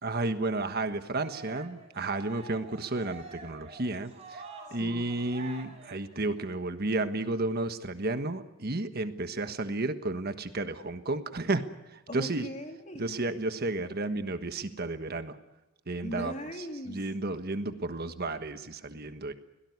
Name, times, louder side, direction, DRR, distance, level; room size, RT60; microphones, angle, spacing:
voice 1, 0.0-4.4 4.7-11.6 11.9-12.5 13.0-15.4 15.9-16.3 16.9-19.3, right 2 dB, 50° right, 9 dB, 1.3 m, -32 dB
Cheering, 1.1-6.6, right 3 dB, 30° right, 5.0 m, -48 dB
voice 2, 12.1-13.1 16.0-17.0, equal, 35° left, 3 dB, 3.5 m, -39 dB
23.5 x 17.5 x 9.6 m, 1.0 s
head